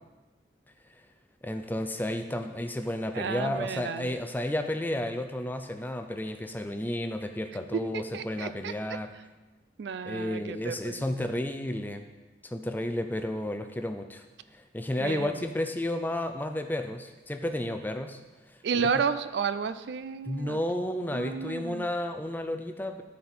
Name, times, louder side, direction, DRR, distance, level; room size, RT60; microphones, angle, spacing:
voice 1, 1.4-9.1 10.0-12.1 12.4-14.2 14.5-18.2 18.5-18.6 20.2-23.0, left 1 dB, 10° left, 7 dB, 0.4 m, -32 dB
voice 2, 3.1-4.1 7.7-8.7 9.8-11.2 15.0-15.3 18.6-20.6 21.1-21.9, right 6 dB, 65° right, 13 dB, 0.4 m, -32 dB
13.0 x 4.3 x 4.2 m, 1.2 s
head